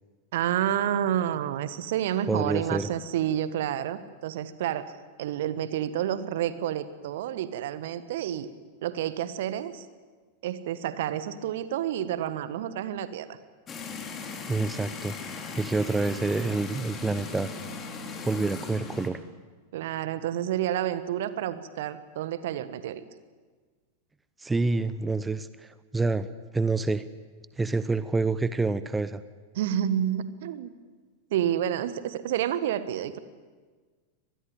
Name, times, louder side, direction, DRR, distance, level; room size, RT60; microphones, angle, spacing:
voice 1, 0.3-4.9 5.2-8.5 8.8-9.8 10.4-13.4 19.7-23.0 29.5-30.7 31.3-33.2, right 11 dB, 55° right, 14 dB, 1.5 m, -29 dB
voice 2, 2.3-2.9 14.5-17.5 18.2-19.2 24.4-26.3 26.5-27.0 27.6-29.2, right 3 dB, 10° right, 14 dB, 0.9 m, -27 dB
sound 1, 13.7-19.1, left 4 dB, 25° left, 3.7 m, -38 dB
24.5 x 20.0 x 9.1 m, 1.4 s
figure-of-eight pair, 90°, 0 cm